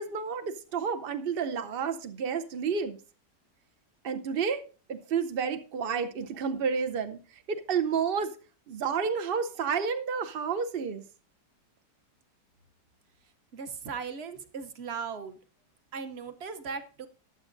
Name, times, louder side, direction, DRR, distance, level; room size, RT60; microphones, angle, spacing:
voice 1, 0.0-3.0 4.0-4.6 4.9-7.2 7.5-8.3 8.7-11.0, right 6 dB, 80° right, 0.5 m, -30 dB
voice 2, 13.5-15.4 15.9-17.1, right 5 dB, 50° right, 0.8 m, -38 dB
21.0 x 7.2 x 2.5 m
omnidirectional pair, 1.9 m